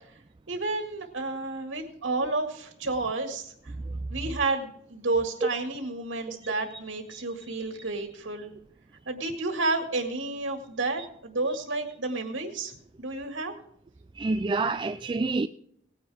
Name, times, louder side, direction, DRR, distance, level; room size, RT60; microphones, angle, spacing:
voice 1, 0.5-3.5 4.1-8.5 9.1-13.5, right 3 dB, 85° right, 1.9 m, -31 dB
voice 2, 14.1-15.5, right 3 dB, 25° right, 0.3 m, -28 dB
18.5 x 9.8 x 3.5 m
head